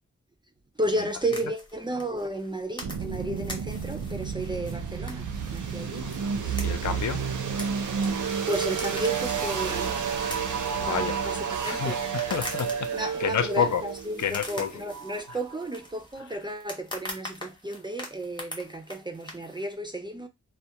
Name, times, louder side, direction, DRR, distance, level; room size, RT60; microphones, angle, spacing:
voice 1, 0.8-6.1 6.4-6.6 8.5-10.1 10.8-12.0 12.9-20.3, right 1 dB, 15° right, 0.3 m, -33 dB
sound 1, 1.1-19.7, left 1 dB, 15° left, 0.7 m, -44 dB
sound 2, 2.8-15.6, right 6 dB, 80° right, 0.5 m, -31 dB
voice 2, 6.0-6.3 6.6-7.2 10.7-11.3 11.6-13.8 14.2-14.7, left 8 dB, 70° left, 0.5 m, -29 dB
2.3 x 2.1 x 2.7 m
wide cardioid pair, 120°, 30 cm